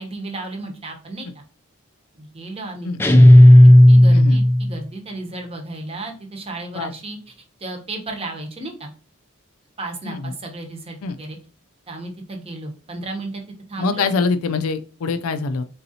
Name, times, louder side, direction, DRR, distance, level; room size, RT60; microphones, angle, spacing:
voice 1, 0.0-1.4 2.1-2.9 3.2-3.3 3.9-7.3 7.6-8.9 9.8-11.4 11.9-13.4 13.7-14.1, right 2 dB, 25° right, 3 dB, 0.9 m, -33 dB
sound 1, 3.0-4.7, left 1 dB, 10° left, 0.3 m, -9 dB
voice 2, 4.1-4.4 6.7-6.9 10.0-10.3 11.0-11.2 13.8-15.6, left 4 dB, 90° left, 10 dB, 0.4 m, -24 dB
4.1 x 3.7 x 2.7 m, 0.38 s
head